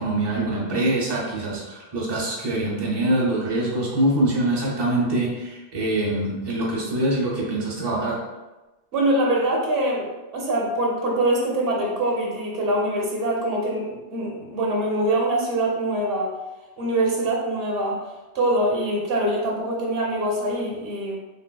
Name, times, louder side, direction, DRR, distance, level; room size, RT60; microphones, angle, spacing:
voice 1, 0.0-8.2, right 1 dB, 25° right, -4 dB, 0.7 m, -24 dB
voice 2, 8.9-16.3 16.8-18.0 18.3-21.2, right 1 dB, 60° right, -2 dB, 0.9 m, -24 dB
3.4 x 2.6 x 2.2 m, 1.1 s
omnidirectional pair, 1.2 m